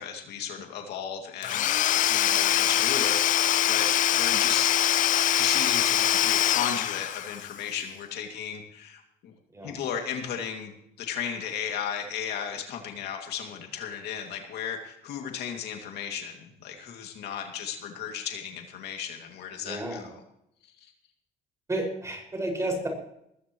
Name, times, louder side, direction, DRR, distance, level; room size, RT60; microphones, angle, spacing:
voice 1, 0.0-4.8 5.4-9.3 9.6-20.2 20.8-20.9, left 8 dB, 75° left, 3 dB, 2.5 m, -35 dB
Domestic sounds home sounds / Tools, 1.4-7.5, left 12 dB, 50° left, 0.4 m, -23 dB
voice 2, 19.6-20.0 21.7-22.9, right 1 dB, 15° right, 1 dB, 5.8 m, -31 dB
20.5 x 15.0 x 3.2 m, 0.76 s
cardioid pair, 110°, 17 cm